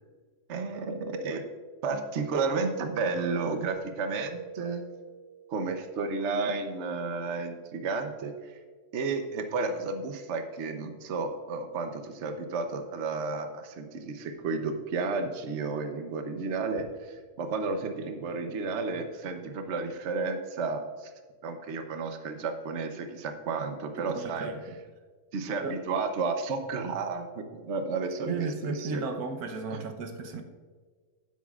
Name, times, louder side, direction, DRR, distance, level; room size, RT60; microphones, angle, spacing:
voice 1, 0.5-1.4 1.8-4.8 5.5-8.6 8.9-21.1 21.4-24.5 25.3-29.1 29.7-29.8, right 4 dB, 55° right, 6 dB, 1.1 m, -32 dB
Keyboard (musical), 3.6-5.6, right 7 dB, 30° right, 2.4 m, -46 dB
voice 2, 24.1-24.8 25.6-25.7 28.3-30.4, right 4 dB, 80° right, 5 dB, 1.5 m, -34 dB
15.5 x 8.3 x 2.4 m, 1.5 s
omnidirectional pair, 1.6 m